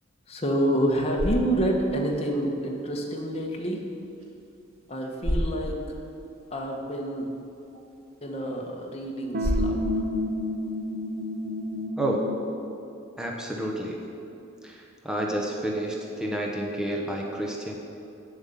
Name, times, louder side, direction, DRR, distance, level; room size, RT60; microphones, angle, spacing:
voice 1, 0.3-3.8 4.9-6.0 6.5-7.3 8.2-10.1, right 1 dB, 30° left, 0 dB, 1.2 m, -28 dB
sound 1, 0.8-11.9, equal, 80° right, 1.9 m, -36 dB
sound 2, 9.3-12.5, left 1 dB, 40° right, 0.6 m, -30 dB
voice 2, 13.2-14.0 14.6-17.8, right 1 dB, 5° right, -1 dB, 0.9 m, -30 dB
9.0 x 7.7 x 6.9 m, 2.8 s
head